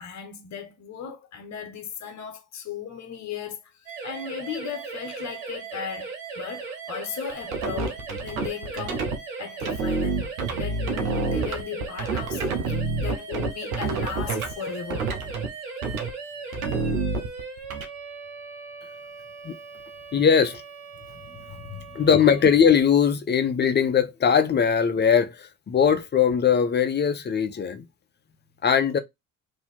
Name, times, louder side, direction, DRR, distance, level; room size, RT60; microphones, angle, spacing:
voice 1, 0.0-6.1 6.3-9.1 9.4-15.2 21.1-22.1, left 7 dB, 40° left, 1.3 m, -37 dB
sound 1, 3.9-22.6, right 4 dB, 75° right, 1.6 m, -38 dB
sound 2, 7.3-9.2 9.6-14.5 14.9-15.5 15.8-16.1 16.5-17.8, right 3 dB, 90° right, 0.7 m, -28 dB
voice 2, 20.1-20.6 21.9-27.8 28.6-29.0, left 7 dB, 25° left, 0.6 m, -20 dB
2.9 x 2.7 x 4.0 m
hypercardioid pair, 60°, 40 cm